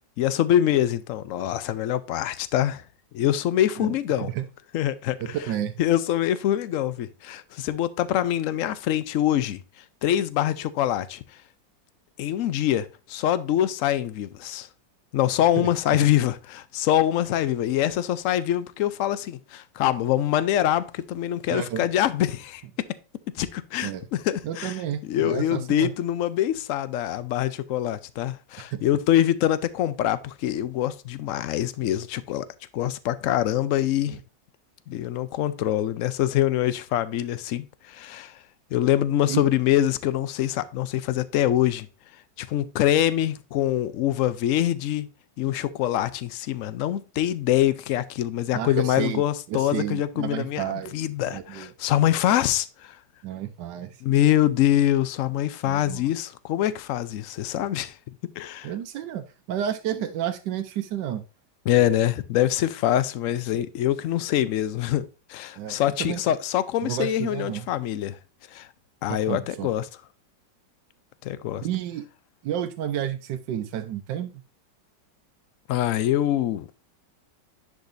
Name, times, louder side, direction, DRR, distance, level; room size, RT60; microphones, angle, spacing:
voice 1, 0.2-2.8 3.1-4.3 4.7-5.4 5.8-11.2 12.2-14.7 15.1-22.6 23.3-24.7 25.0-32.5 32.7-34.2 34.9-38.4 38.7-41.9 42.4-45.1 45.4-53.0 54.0-58.0 58.4-58.7 61.7-68.2 68.5-68.7 69.0-69.9 71.2-71.7 75.7-76.7, left 12 dB, 75° left, 0.7 m, -24 dB
voice 2, 3.8-4.4 5.2-5.8 15.6-16.0 21.5-21.9 23.8-24.0 24.4-25.9 28.7-28.8 34.1-34.2 39.3-39.4 48.5-49.2 49.5-50.9 51.3-51.7 53.2-53.9 55.6-56.0 58.6-61.2 65.5-66.2 66.8-67.7 69.1-69.7 71.6-72.1 72.4-74.3, right 10 dB, 75° right, 1.3 m, -31 dB
10.5 x 5.2 x 2.6 m
omnidirectional pair, 2.0 m